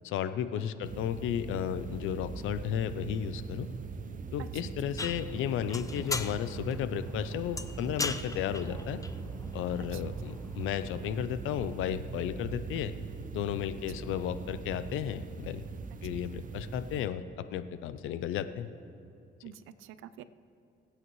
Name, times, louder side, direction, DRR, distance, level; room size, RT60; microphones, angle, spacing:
voice 1, 0.0-3.7 4.3-9.0 9.5-12.9 13.3-15.6 16.0-18.7, left 10 dB, 90° left, 12 dB, 0.6 m, -34 dB
sound 1, 0.8-17.1, right 5 dB, 40° right, 0.7 m, -41 dB
voice 2, 4.4-4.7 9.8-10.3 13.9-14.0 15.9-16.0 19.4-20.2, right 11 dB, 90° right, 14 dB, 0.5 m, -48 dB
sound 2, 5.0-11.3, left 3 dB, 15° left, 0.5 m, -40 dB
22.5 x 8.8 x 3.2 m, 2.6 s
cardioid pair, 90°, 20 cm